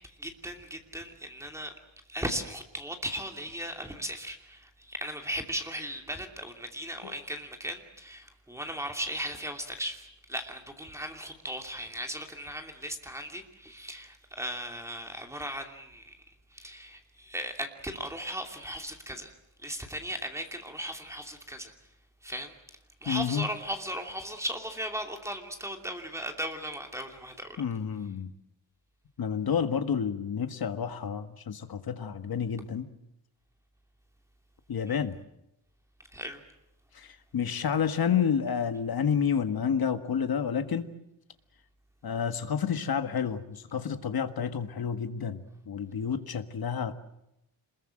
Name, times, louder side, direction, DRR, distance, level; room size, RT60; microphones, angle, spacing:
voice 1, 0.2-1.7 2.1-16.2 16.5-19.3 19.6-21.7 22.2-22.5 23.0-27.6 34.9-35.0 36.1-36.4, equal, 5° right, 4 dB, 2.8 m, -37 dB
voice 2, 23.1-23.5 27.6-28.3 29.2-32.9 34.7-35.2 36.9-40.9 42.0-46.9, left 7 dB, 55° left, 9 dB, 1.7 m, -30 dB
27.0 x 21.5 x 7.8 m, 0.83 s
wide cardioid pair, 170°, 45 cm